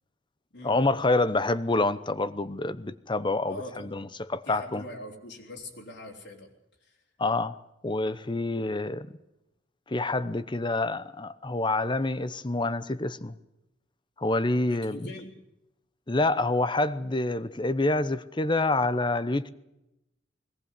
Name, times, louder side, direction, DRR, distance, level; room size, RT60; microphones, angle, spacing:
voice 1, 0.6-4.8 7.2-7.6 7.8-9.1 9.9-13.3 14.2-15.0 16.1-19.5, left 2 dB, 25° left, 0.8 m, -27 dB
voice 2, 3.5-4.1 4.5-6.5 6.8-7.0 14.7-15.4, left 1 dB, 60° left, 3.7 m, -43 dB
21.5 x 18.5 x 8.2 m
head